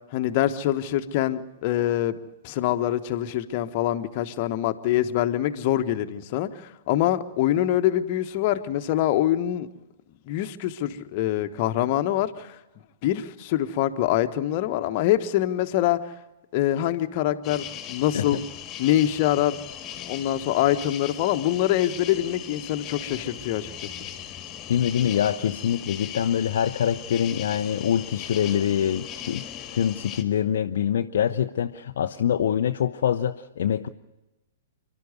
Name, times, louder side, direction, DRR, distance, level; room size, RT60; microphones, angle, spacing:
voice 1, 0.1-2.2 2.4-9.7 10.3-12.6 13.0-16.1 16.5-18.4 18.8-19.6 19.9-23.7, left 12 dB, 40° left, 9 dB, 1.2 m, -24 dB
sound 1, 17.4-30.2, left 10 dB, 25° left, 1.9 m, -38 dB
voice 2, 24.7-29.4 29.7-33.9, left 9 dB, 60° left, 6 dB, 0.7 m, -24 dB
28.0 x 12.0 x 9.6 m, 1.0 s
figure-of-eight pair, 110°, 0 cm